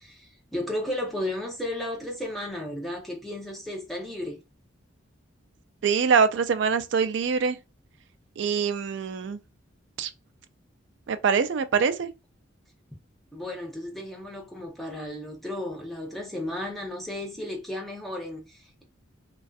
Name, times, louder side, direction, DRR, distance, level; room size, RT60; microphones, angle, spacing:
voice 1, 0.0-4.4 13.3-18.8, left 1 dB, ahead, 0.6 m, -34 dB
voice 2, 5.8-7.6 8.4-9.4 10.0-10.1 11.1-12.1, right 6 dB, 65° right, 0.3 m, -24 dB
2.5 x 2.3 x 2.3 m
head